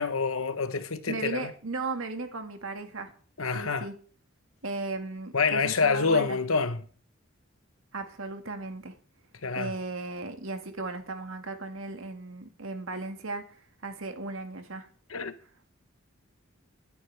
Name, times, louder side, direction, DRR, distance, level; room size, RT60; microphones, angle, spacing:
voice 1, 0.0-1.5 3.4-3.9 5.3-6.8 9.4-9.7 15.1-15.3, left 4 dB, 85° left, 1.1 m, -27 dB
voice 2, 1.1-3.1 3.5-3.9 4.6-6.4 7.9-9.0 9.5-14.9, right 3 dB, 80° right, 2.0 m, -36 dB
22.5 x 9.8 x 3.5 m
head